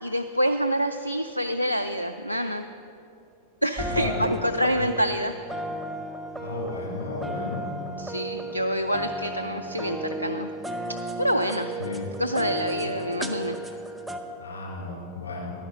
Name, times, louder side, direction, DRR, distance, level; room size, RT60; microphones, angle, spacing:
voice 1, 0.0-2.6 3.6-5.3 8.0-10.5 11.2-11.7 12.2-13.6, equal, 90° left, 8 dB, 0.3 m, -26 dB
voice 2, 3.8-4.3 6.3-7.6 11.8-12.1 12.8-12.9 14.4-15.5, left 4 dB, 70° left, -2 dB, 2.9 m, -34 dB
sound 1, 3.8-14.2, right 1 dB, 5° right, 0.8 m, -34 dB
11.5 x 9.9 x 5.1 m, 2.7 s
figure-of-eight pair, 90°, 0 cm